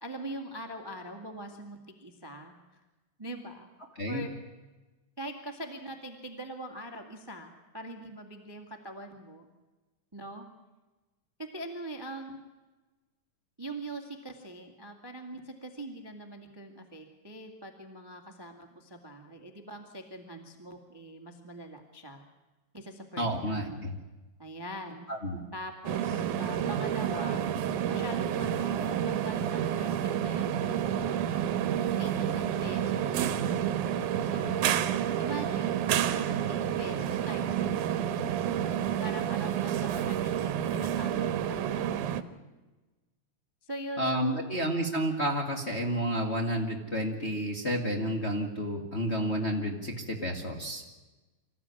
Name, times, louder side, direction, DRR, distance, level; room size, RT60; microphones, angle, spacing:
voice 1, 0.0-2.8 3.2-3.7 4.1-4.3 5.2-9.5 10.1-10.5 11.4-12.4 13.6-22.2 22.7-23.9 24.4-25.1 25.5-27.5 27.9-29.9 30.2-31.2 32.0-33.5 34.2-34.9 35.2-38.2 39.0-41.9 43.6-44.5, right 1 dB, 10° right, 5 dB, 1.6 m, -43 dB
voice 2, 23.2-23.9 25.1-25.4 44.0-50.8, equal, 25° left, 0 dB, 1.9 m, -30 dB
sound 1, 25.9-42.2, right 9 dB, 80° right, 2.5 m, -29 dB
25.5 x 15.0 x 9.9 m, 1.2 s
omnidirectional pair, 3.6 m